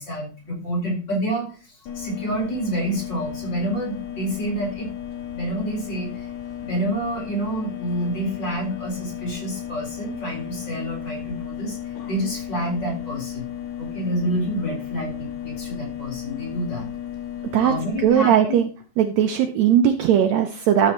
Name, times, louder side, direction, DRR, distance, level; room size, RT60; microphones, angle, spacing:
voice 1, 0.0-4.9 5.3-6.3 6.6-11.8 12.0-13.5 13.8-16.9 17.6-18.6, right 1 dB, 35° left, -2 dB, 4.7 m, -28 dB
sound 1, 1.9-18.1, left 10 dB, 65° left, 2.7 m, -34 dB
voice 2, 18.0-18.7 19.0-20.9, right 9 dB, 75° right, 6 dB, 1.8 m, -18 dB
13.0 x 7.9 x 3.0 m, 0.35 s
omnidirectional pair, 3.6 m